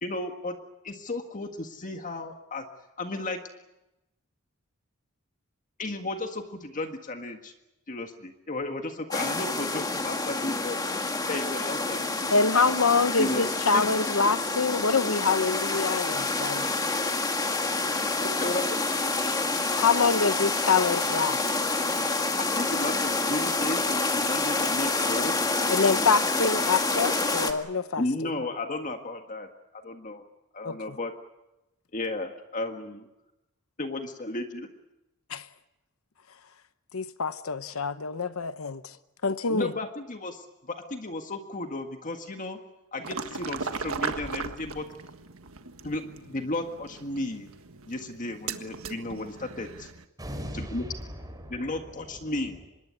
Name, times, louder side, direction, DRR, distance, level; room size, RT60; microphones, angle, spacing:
voice 1, 0.0-0.6 0.8-2.6 3.0-3.4 5.8-7.5 7.9-10.8 11.3-12.3 13.2-13.9 18.2-18.8 22.4-25.4 28.0-29.5 29.7-30.2 30.5-31.1 31.9-33.1 33.8-34.7 39.5-42.6 42.9-44.9 45.8-47.5 47.9-49.9 50.6-50.8 51.5-52.6, left 2 dB, 35° left, 1.7 m, -34 dB
sound 1, 9.1-27.5, left 3 dB, 20° left, 1.8 m, -28 dB
voice 2, 12.3-16.7 19.8-21.4 25.7-28.0 30.6-31.0 35.3-35.5 36.9-39.0 39.2-39.7, left 4 dB, 75° left, 0.9 m, -25 dB
sound 2, 43.0-50.1, right 5 dB, 75° right, 1.6 m, -38 dB
voice 3, 50.2-52.7, equal, 20° right, 5.7 m, -40 dB
25.5 x 21.0 x 8.5 m
head